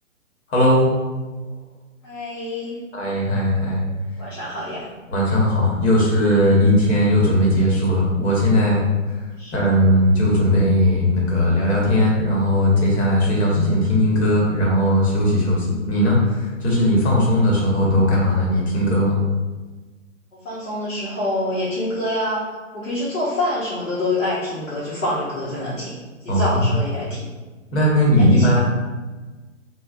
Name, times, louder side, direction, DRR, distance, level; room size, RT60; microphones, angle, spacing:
voice 1, 0.5-0.9 2.9-3.8 5.1-8.8 9.5-19.2 26.3-26.7 27.7-28.6, left 1 dB, 55° left, -3 dB, 1.2 m, -18 dB
voice 2, 2.0-2.8 4.2-4.9 9.4-9.5 20.3-22.4 22.7-25.9 26.2-27.3 28.2-28.6, left 1 dB, 70° left, -8 dB, 0.9 m, -26 dB
3.2 x 2.2 x 2.5 m, 1.3 s
figure-of-eight pair, 135°, 39 cm